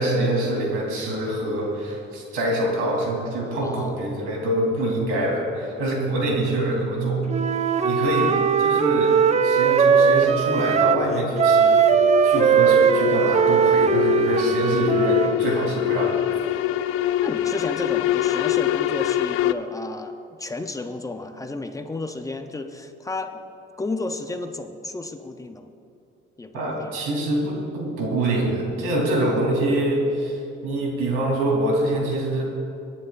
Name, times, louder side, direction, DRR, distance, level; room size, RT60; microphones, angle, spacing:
voice 1, 0.0-7.4 7.8-12.0 12.2-16.2 26.5-32.4, right 1 dB, 90° right, -1 dB, 3.3 m, -25 dB
voice 2, 3.6-4.0 17.2-23.3 23.8-25.7 26.4-26.9, left 2 dB, 15° left, 6 dB, 0.6 m, -32 dB
Wind instrument woodwind instrument, 7.3-11.0 11.4-15.4, right 7 dB, 30° right, 0.5 m, -19 dB
sound 1, 9.1-19.5, left 14 dB, 90° left, 0.5 m, -25 dB
25.0 x 9.9 x 2.5 m, 2.7 s
cardioid pair, 110°, 21 cm